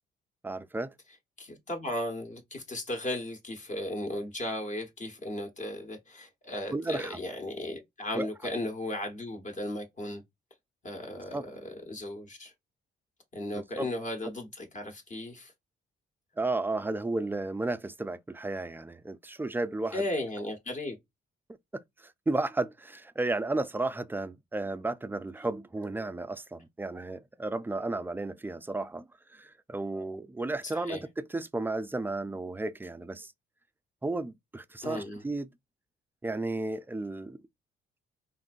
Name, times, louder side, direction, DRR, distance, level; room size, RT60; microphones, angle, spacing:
voice 1, 0.4-0.9 6.7-7.2 8.1-8.3 11.3-11.4 13.5-13.9 16.4-20.0 21.7-33.3 34.0-35.5 36.2-37.4, right 2 dB, 10° right, 0.3 m, -33 dB
voice 2, 1.4-10.2 10.8-12.5 13.3-15.5 19.9-21.0 30.7-31.0 34.8-35.2, left 1 dB, 40° left, 1.1 m, -36 dB
3.6 x 2.6 x 2.3 m
cardioid pair, 90°, 20 cm